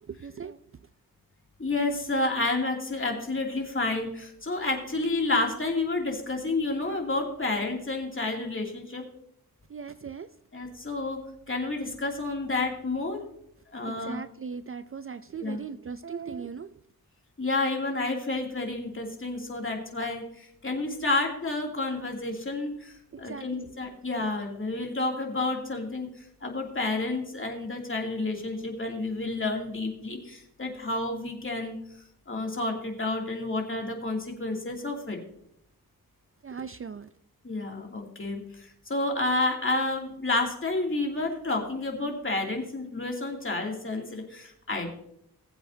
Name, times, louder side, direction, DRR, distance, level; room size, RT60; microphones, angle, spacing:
voice 1, 0.0-0.6 9.7-10.3 13.9-16.7 23.1-23.7 36.4-37.1, right 6 dB, 40° right, 12 dB, 0.4 m, -39 dB
voice 2, 1.6-9.0 10.5-11.2 11.5-13.2 13.7-14.2 15.4-15.6 17.4-26.1 26.4-31.7 32.3-35.2 37.4-44.9, left 2 dB, 35° left, 1 dB, 2.7 m, -30 dB
20.0 x 7.8 x 2.7 m, 0.73 s
wide cardioid pair, 85°, 36 cm